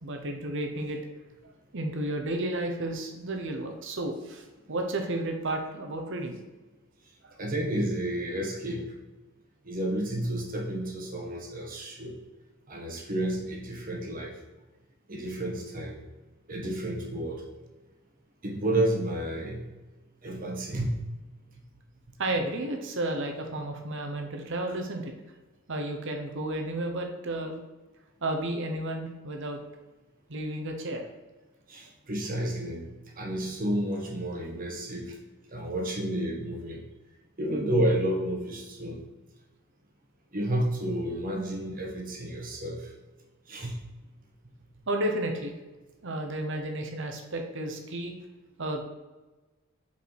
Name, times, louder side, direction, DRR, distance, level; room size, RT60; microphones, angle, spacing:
voice 1, 0.0-1.0 1.4-6.4 7.2-7.4 22.2-25.1 25.7-27.6 28.2-29.6 30.3-31.0 44.9-45.5 46.0-48.1 48.6-48.8, right 1 dB, 60° right, 3 dB, 1.0 m, -32 dB
voice 2, 7.4-8.9 9.6-12.2 12.7-14.4 15.1-16.0 16.5-17.4 18.4-19.7 20.2-21.0 31.7-32.8 33.1-35.2 35.5-36.8 37.4-39.0 40.3-42.9 43.5-43.8, right 1 dB, 40° right, 0 dB, 1.2 m, -31 dB
5.6 x 4.8 x 4.6 m, 1.2 s
head